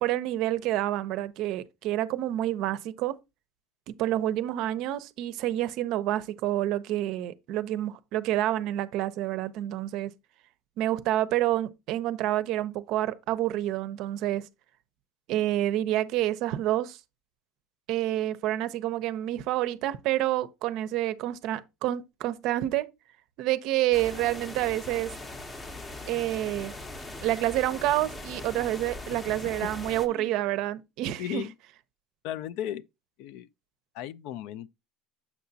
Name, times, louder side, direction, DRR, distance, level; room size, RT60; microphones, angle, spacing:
voice 1, 0.0-3.2 3.9-10.1 10.8-14.5 15.3-17.0 17.9-22.9 23.4-25.1 26.1-26.7 27.2-31.4, right 14 dB, 55° right, 0.5 m, -28 dB
sound 1, 23.9-30.1, left 2 dB, 15° left, 0.6 m, -40 dB
voice 2, 31.2-31.5 32.2-32.8 33.2-33.5 33.9-34.7, left 11 dB, 65° left, 0.4 m, -35 dB
7.1 x 5.7 x 2.6 m
cardioid pair, 155°, 0 cm